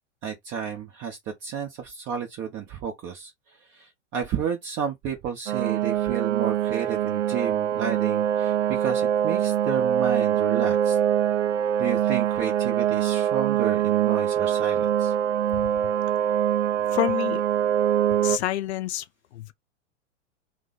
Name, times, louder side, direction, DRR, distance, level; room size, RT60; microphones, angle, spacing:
voice 1, 0.2-3.3 3.7-11.0 11.8-15.1, right 8 dB, 30° right, 0.8 m, -31 dB
sound 1, 5.5-18.4, right 10 dB, 80° right, 0.5 m, -24 dB
voice 2, 16.9-17.4 18.2-19.1 19.3-19.5, left 14 dB, 60° left, 0.5 m, -28 dB
3.1 x 2.0 x 3.8 m
hypercardioid pair, 100°, 37 cm